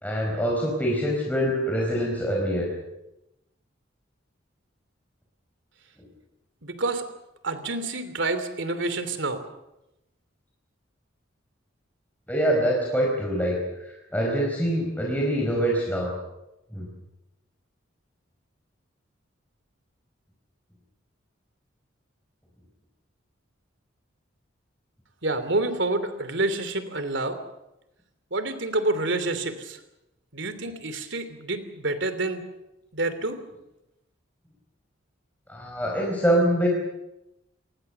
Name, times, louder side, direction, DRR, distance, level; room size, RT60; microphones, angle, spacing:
voice 1, 0.0-2.7 12.3-16.1 16.7-16.9 35.5-36.7, equal, 10° left, -2 dB, 4.7 m, -25 dB
voice 2, 6.6-7.0 7.4-9.4 25.2-27.4 28.3-29.8 30.3-32.4 32.9-33.4, right 2 dB, 65° right, 11 dB, 2.9 m, -28 dB
28.0 x 20.0 x 6.9 m, 0.92 s
head